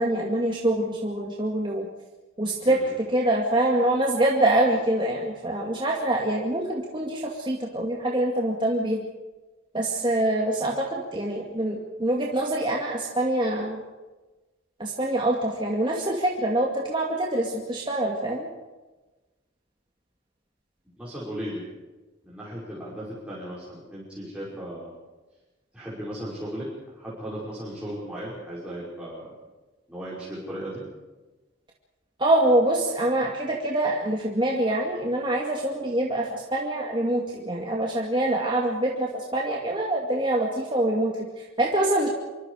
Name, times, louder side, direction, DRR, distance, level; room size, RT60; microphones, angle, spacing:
voice 1, 0.0-1.9 2.4-2.8 3.1-9.1 9.7-13.8 14.8-18.5 32.2-42.1, right 1 dB, 25° right, -2 dB, 2.3 m, -25 dB
voice 2, 21.0-21.6 22.2-24.9 25.7-29.4 29.9-30.8, equal, 5° right, -8 dB, 5.7 m, -36 dB
27.0 x 24.0 x 5.0 m, 1.2 s
head